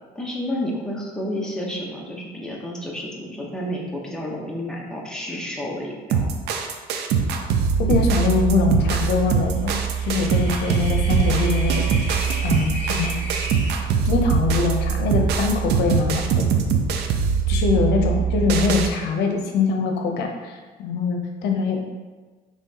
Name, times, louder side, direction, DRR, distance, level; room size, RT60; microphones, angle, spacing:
voice 1, 0.1-6.3 10.5-10.9, equal, 5° left, -3 dB, 0.9 m, -30 dB
sound 1, 6.1-18.9, right 6 dB, 75° right, 0.5 m, -22 dB
voice 2, 7.8-11.8 12.4-13.2 14.0-16.4 17.5-21.9, left 5 dB, 80° left, 2 dB, 0.6 m, -23 dB
sound 2, 9.5-13.8, left 1 dB, 40° left, 1.2 m, -35 dB
5.4 x 3.1 x 2.8 m, 1.3 s
cardioid pair, 110°, 17 cm